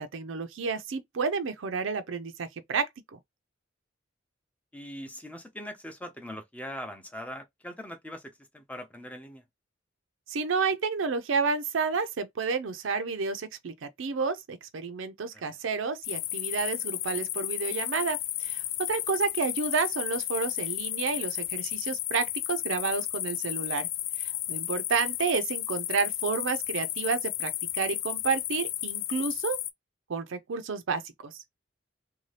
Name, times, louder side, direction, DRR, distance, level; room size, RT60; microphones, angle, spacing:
voice 1, 0.0-3.2 10.3-23.9 24.2-29.6 30.1-31.4, right 5 dB, 80° right, 0.5 m, -30 dB
voice 2, 4.7-9.4 15.3-15.4, equal, 5° left, 0.5 m, -41 dB
sound 1, 16.0-29.7, left 14 dB, 80° left, 0.3 m, -33 dB
2.7 x 2.2 x 3.2 m
head